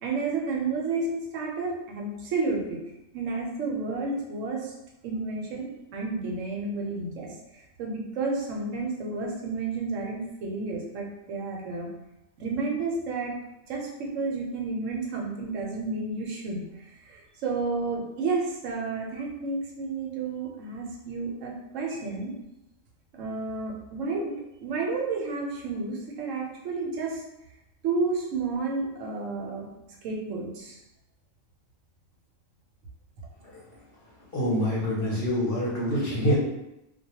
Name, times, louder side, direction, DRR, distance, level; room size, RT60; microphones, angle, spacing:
voice 1, 0.0-2.8 3.1-4.7 5.0-11.9 12.4-13.4 13.7-22.3 23.1-24.4 24.6-27.2 27.8-29.7 30.0-30.8, right 3 dB, 80° right, -1 dB, 1.0 m, -31 dB
voice 2, 34.3-36.4, equal, 55° left, -6 dB, 0.7 m, -26 dB
2.3 x 2.1 x 2.8 m, 0.90 s
omnidirectional pair, 1.4 m